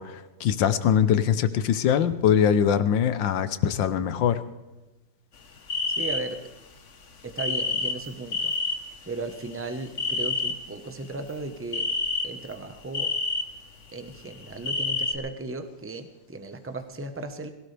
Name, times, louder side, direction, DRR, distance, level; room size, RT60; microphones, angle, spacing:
voice 1, 0.0-4.4, left 8 dB, 85° left, 12 dB, 1.6 m, -22 dB
sound 1, 5.7-6.4 7.4-8.8 9.2-10.5 11.2-11.3 11.7-12.5 12.9-13.4 14.2-15.1, left 3 dB, 45° left, 1.4 m, -28 dB
voice 2, 5.9-6.4 7.2-8.5 9.0-11.8 12.2-13.1 13.9-17.5, right 2 dB, 10° right, 7 dB, 0.8 m, -36 dB
22.0 x 17.0 x 3.4 m, 1.1 s
omnidirectional pair, 2.0 m